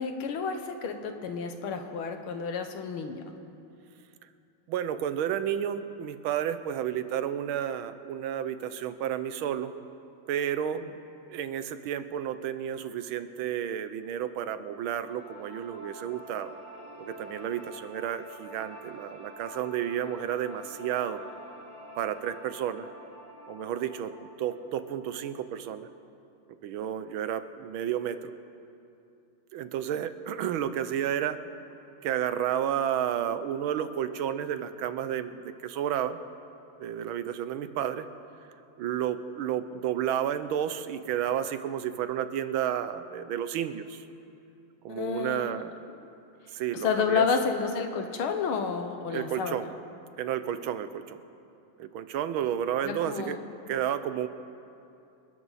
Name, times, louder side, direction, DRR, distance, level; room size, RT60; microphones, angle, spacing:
voice 1, 0.0-3.3 10.8-10.9 44.9-45.5 46.7-49.8 52.8-53.4, left 6 dB, 85° left, 6 dB, 2.0 m, -30 dB
voice 2, 4.7-9.7 10.3-10.8 11.2-16.5 17.0-21.2 22.0-22.9 23.5-25.9 26.6-28.3 29.5-31.4 32.0-36.2 36.8-38.1 38.8-44.0 44.8-45.7 46.5-47.3 49.1-49.7 50.2-51.2 51.8-53.4 53.7-54.3, right 10 dB, 80° right, 11 dB, 1.5 m, -31 dB
sound 1, 14.7-25.8, equal, 30° left, 4.4 m, -48 dB
28.0 x 12.0 x 4.1 m, 2.7 s
omnidirectional pair, 2.3 m